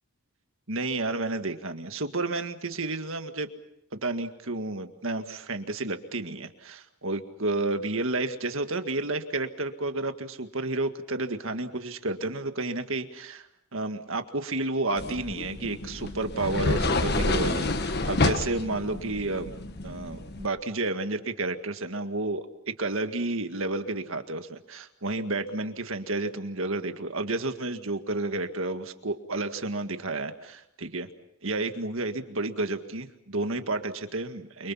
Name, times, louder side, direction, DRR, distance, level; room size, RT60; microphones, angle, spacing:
voice 1, 0.7-3.5 3.9-13.5 13.7-19.5 19.8-22.5 22.8-31.1 31.4-34.7, right 2 dB, 60° right, 7 dB, 1.9 m, -31 dB
sound 1, 15.0-20.5, left 2 dB, 45° left, 1.6 m, -29 dB
29.0 x 24.5 x 5.7 m, 0.80 s
head